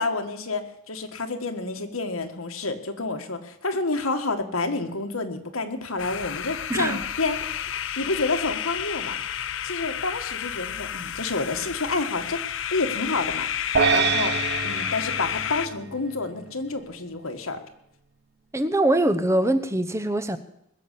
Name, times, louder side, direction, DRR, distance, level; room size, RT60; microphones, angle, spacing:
voice 1, 0.0-7.7 8.0-12.4 12.7-14.3 14.6-17.6, left 3 dB, 85° left, 6 dB, 1.8 m, -29 dB
sound 1, 6.0-15.7, left 10 dB, 60° left, 0.6 m, -31 dB
voice 2, 6.7-7.1 18.5-20.4, right 1 dB, 15° right, 11 dB, 0.9 m, -23 dB
sound 2, 13.7-16.2, right 6 dB, 50° right, 0.8 m, -25 dB
21.0 x 7.2 x 8.4 m, 0.79 s
head